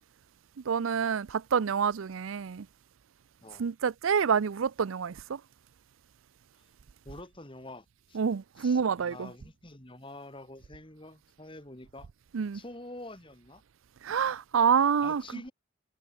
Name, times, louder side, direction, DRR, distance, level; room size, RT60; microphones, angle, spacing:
voice 1, 0.7-2.7 3.6-5.4 8.1-9.3 12.3-12.6 14.0-15.2, right 6 dB, 85° right, 0.5 m, -27 dB
voice 2, 7.0-8.2 8.6-12.1 12.5-13.6 15.0-15.5, left 1 dB, 25° left, 2.9 m, -46 dB
head